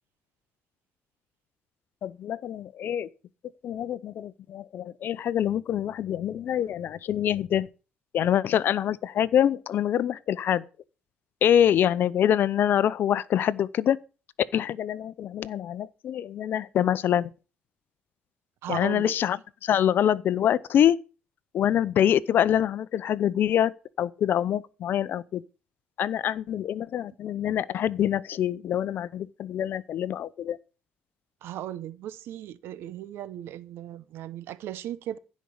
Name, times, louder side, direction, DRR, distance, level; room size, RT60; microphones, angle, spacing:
voice 1, 2.0-3.1 3.6-7.7 8.1-10.6 11.4-14.0 14.5-17.3 18.7-21.0 21.5-25.4 26.0-30.6, left 10 dB, 60° left, 0.7 m, -25 dB
voice 2, 18.6-19.1 31.4-35.2, right 12 dB, 75° right, 0.9 m, -37 dB
15.5 x 5.3 x 7.9 m
cardioid pair, 100°, 4 cm